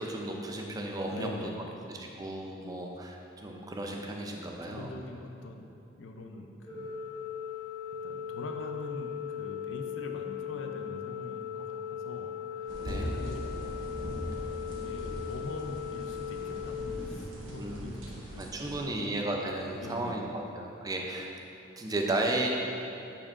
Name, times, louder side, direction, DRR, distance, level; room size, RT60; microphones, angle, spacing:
voice 1, 0.0-1.3 1.9-4.9 12.8-13.1 17.6-18.0 18.4-21.3 21.8-22.5, right 2 dB, 20° right, 1 dB, 0.5 m, -34 dB
voice 2, 1.1-1.9 4.7-7.0 8.0-14.4 14.7-19.1 19.7-20.4, left 2 dB, 75° left, 4 dB, 0.5 m, -44 dB
Organ, 6.7-17.7, left 8 dB, 25° left, 0.7 m, -38 dB
sound 1, 12.7-18.8, equal, 90° right, 0.9 m, -40 dB
8.6 x 4.4 x 2.5 m, 2.8 s
head